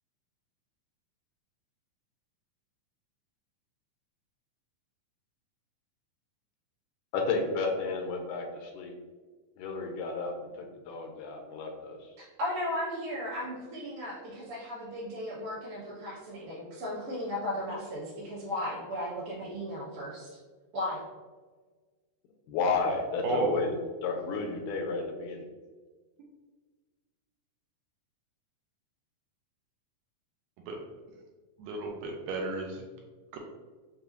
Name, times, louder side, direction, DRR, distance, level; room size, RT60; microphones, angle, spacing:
voice 1, 7.1-8.9 9.6-12.1 22.5-23.8 24.0-25.5, left 4 dB, 80° left, 2 dB, 2.1 m, -32 dB
voice 2, 12.4-20.4 20.7-21.0, left 1 dB, 60° right, -8 dB, 2.8 m, -35 dB
voice 3, 31.6-32.9 33.3-33.4, right 3 dB, 80° right, 0 dB, 1.8 m, -32 dB
6.7 x 2.3 x 2.7 m, 1.4 s
omnidirectional pair, 3.7 m